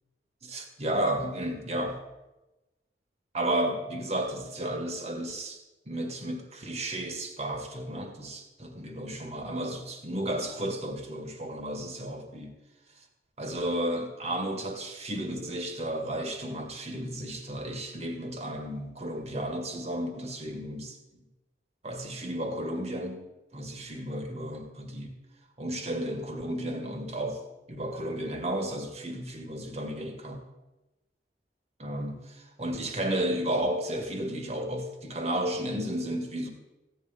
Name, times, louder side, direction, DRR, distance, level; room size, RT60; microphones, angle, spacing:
voice 1, 0.4-2.0 3.3-5.6 5.9-12.5 13.4-21.0 21.8-23.2 23.5-25.1 25.6-27.4 27.7-30.4 31.8-36.5, right 1 dB, 40° right, 4 dB, 2.0 m, -33 dB
15.5 x 9.5 x 5.3 m, 1.0 s
head